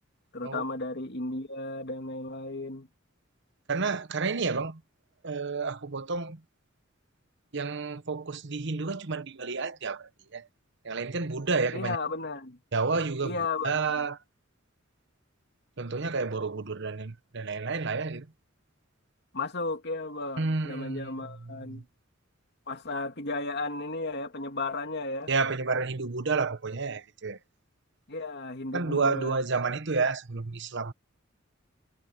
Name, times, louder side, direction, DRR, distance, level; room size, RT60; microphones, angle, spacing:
voice 1, 0.3-2.9 11.7-12.6 13.2-14.1 19.3-21.8 22.7-25.3 28.1-29.4, left 3 dB, 55° left, 2.7 m, -34 dB
voice 2, 3.7-4.8 5.2-6.4 7.5-10.5 10.8-12.0 12.7-14.2 15.8-18.3 20.4-21.1 21.4-21.8 25.3-27.4 28.7-30.9, right 4 dB, 65° right, 1.1 m, -30 dB
head